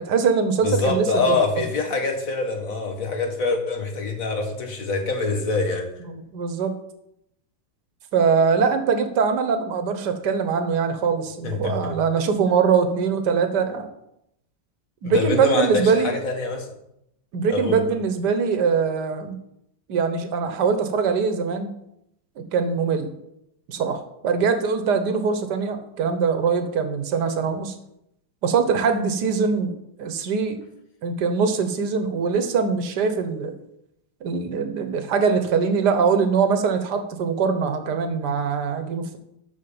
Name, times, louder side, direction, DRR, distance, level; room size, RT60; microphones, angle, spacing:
voice 1, 0.0-1.4 6.1-6.7 8.1-13.9 15.0-16.2 17.3-19.4 19.9-21.7 22.5-23.1 23.7-27.7 28.4-29.7 30.0-30.6 31.0-33.5 34.2-39.2, right 5 dB, 65° right, 1.7 m, -22 dB
voice 2, 0.6-5.9 11.4-12.0 15.0-16.7 17.5-17.8, left 3 dB, 45° left, 2.0 m, -25 dB
12.5 x 4.7 x 7.1 m
omnidirectional pair, 2.0 m